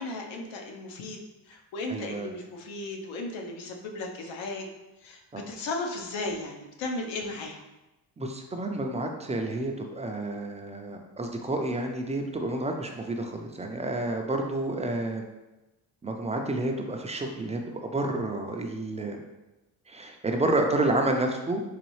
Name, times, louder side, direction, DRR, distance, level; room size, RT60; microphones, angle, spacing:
voice 1, 0.0-4.7 5.0-7.6, left 2 dB, 80° left, 2 dB, 0.8 m, -35 dB
voice 2, 1.9-2.3 5.3-5.4 8.2-15.3 16.0-19.2 19.9-21.6, right 2 dB, 15° right, 3 dB, 0.3 m, -30 dB
4.0 x 3.1 x 3.1 m, 1.0 s
cardioid pair, 110°, 45 cm